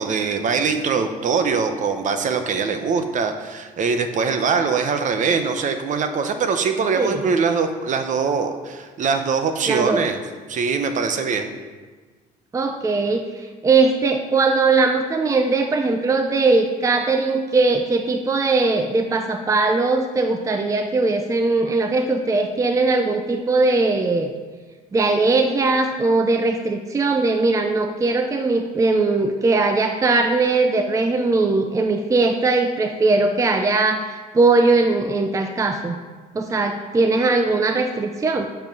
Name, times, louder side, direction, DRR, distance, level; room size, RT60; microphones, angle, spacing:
voice 1, 0.0-10.2 10.5-11.5, right 5 dB, 50° right, 7 dB, 0.8 m, -22 dB
voice 2, 9.7-10.1 12.5-13.3 13.6-24.3 24.9-36.0 36.3-38.5, right 3 dB, 20° right, 5 dB, 0.5 m, -20 dB
6.9 x 5.9 x 5.3 m, 1.4 s
cardioid pair, 110°, 17 cm